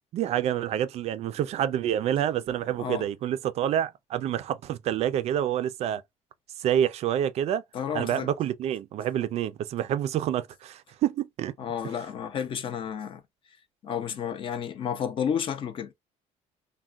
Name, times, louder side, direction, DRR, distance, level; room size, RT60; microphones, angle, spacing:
voice 1, 0.1-6.0 6.6-7.6 7.9-11.5, right 10 dB, 55° right, 0.4 m, -27 dB
voice 2, 7.7-8.3 11.6-13.2 13.8-15.9, left 8 dB, 40° left, 0.6 m, -31 dB
3.4 x 2.2 x 2.4 m
cardioid pair, 150°, 13 cm